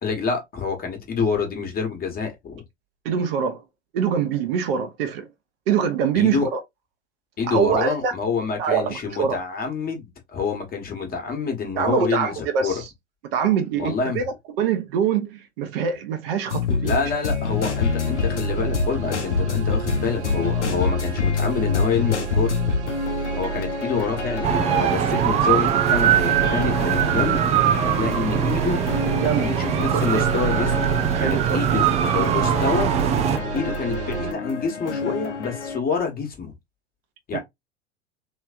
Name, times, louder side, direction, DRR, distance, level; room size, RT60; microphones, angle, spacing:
voice 1, 0.0-2.6 6.1-6.5 7.4-12.3 12.6-12.7 13.8-14.2 16.8-22.6 23.4-27.4 27.8-28.9 29.2-30.9 31.2-31.8 32.1-32.9 33.5-36.5 37.3-37.4, left 5 dB, 25° left, 1.3 m, -27 dB
voice 2, 3.0-3.6 3.9-5.3 5.7-6.6 7.5-8.1 8.6-9.4 11.7-12.9 13.3-17.1 29.2-29.5 29.9-30.2 31.1-31.8 37.3-37.4, right 7 dB, 55° right, 1.0 m, -24 dB
sound 1, 16.5-35.8, left 5 dB, 80° left, 0.8 m, -28 dB
sound 2, 17.5-34.3, right 8 dB, 80° right, 0.7 m, -30 dB
sound 3, 24.4-33.4, right 10 dB, 20° right, 0.3 m, -22 dB
3.2 x 3.1 x 2.4 m
figure-of-eight pair, 85°, 34 cm